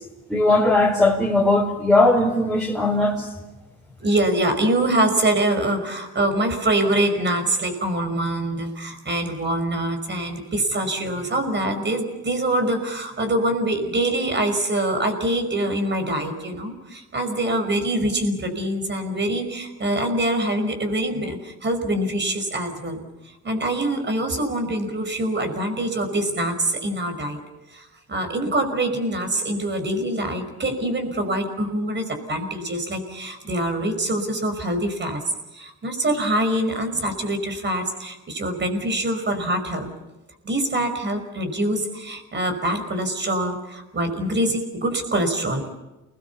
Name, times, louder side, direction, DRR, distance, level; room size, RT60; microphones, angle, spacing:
voice 1, 0.3-3.3, left 2 dB, ahead, -6 dB, 4.9 m, -18 dB
voice 2, 4.0-23.0 23.4-27.4 27.7-35.2 35.5-39.9 40.4-45.6, right 1 dB, 35° right, 7 dB, 5.5 m, -24 dB
29.5 x 20.5 x 7.1 m, 1.0 s
cardioid pair, 90°, 30 cm